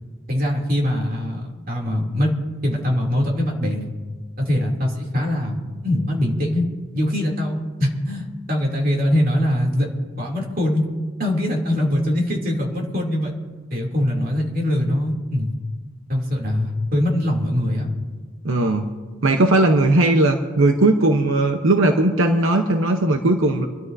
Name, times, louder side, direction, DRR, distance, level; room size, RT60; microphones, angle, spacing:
voice 1, 0.3-2.3 2.6-3.9 4.4-6.7 6.9-9.9 10.2-10.8 11.2-13.3 13.7-15.5 16.1-17.9, left 1 dB, 45° right, 0 dB, 2.9 m, -22 dB
voice 2, 18.4-18.9 19.2-23.7, right 2 dB, 80° right, 4 dB, 0.9 m, -18 dB
26.0 x 13.0 x 2.7 m, 1.4 s
head